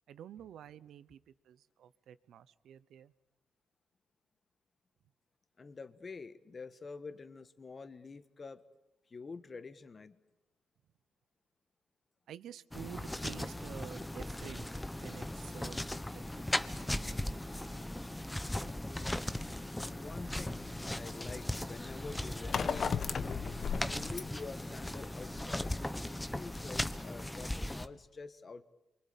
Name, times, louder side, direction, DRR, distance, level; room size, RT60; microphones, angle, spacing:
voice 1, 0.1-3.1 12.3-15.8 16.1-17.3, right 10 dB, 75° right, 16 dB, 0.9 m, -50 dB
voice 2, 5.6-8.6 9.1-10.1 19.9-23.4 23.8-25.7 26.1-28.6, left 4 dB, 35° left, 12 dB, 1.4 m, -47 dB
sound 1, 12.7-27.9, left 1 dB, 10° left, 1.1 m, -38 dB
sound 2, 20.4-25.7, left 6 dB, 50° left, 1.0 m, -38 dB
28.0 x 24.0 x 8.5 m, 0.98 s
cardioid pair, 90°, 0 cm